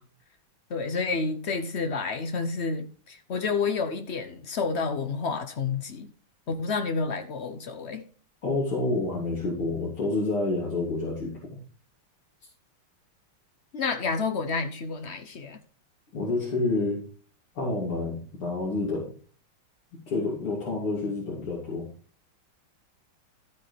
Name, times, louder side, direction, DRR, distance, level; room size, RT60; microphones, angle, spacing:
voice 1, 0.7-6.1 6.5-8.0 13.7-15.6, left 4 dB, 70° left, 0.6 m, -29 dB
voice 2, 8.4-11.6 16.1-17.1 17.6-19.1 20.1-21.9, left 3 dB, 85° left, 3.8 m, -28 dB
12.5 x 8.3 x 3.3 m
omnidirectional pair, 2.3 m